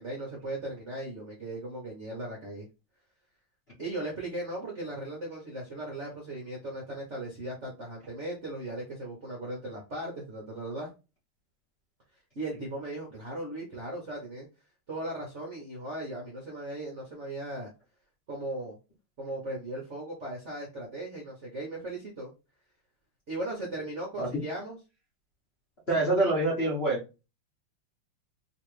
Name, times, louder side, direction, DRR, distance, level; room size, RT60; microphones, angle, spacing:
voice 1, 0.0-2.7 3.8-10.9 12.3-14.5 14.9-17.7 18.3-18.8 19.2-22.3 23.3-24.8 25.9-26.1, right 1 dB, 50° right, -2 dB, 0.9 m, -37 dB
voice 2, 25.9-27.0, right 2 dB, 40° left, -6 dB, 1.0 m, -25 dB
3.1 x 3.1 x 3.1 m, 0.29 s
omnidirectional pair, 2.4 m